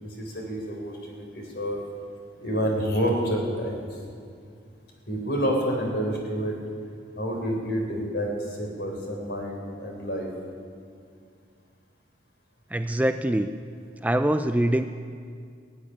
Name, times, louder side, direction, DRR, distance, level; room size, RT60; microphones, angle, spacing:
voice 1, 0.0-1.8 2.4-3.9 5.1-6.5 7.2-10.3, equal, 65° left, 1 dB, 3.7 m, -28 dB
voice 2, 12.7-13.5 14.0-14.9, right 1 dB, 10° right, 8 dB, 0.3 m, -24 dB
16.5 x 8.8 x 9.9 m, 2.3 s
head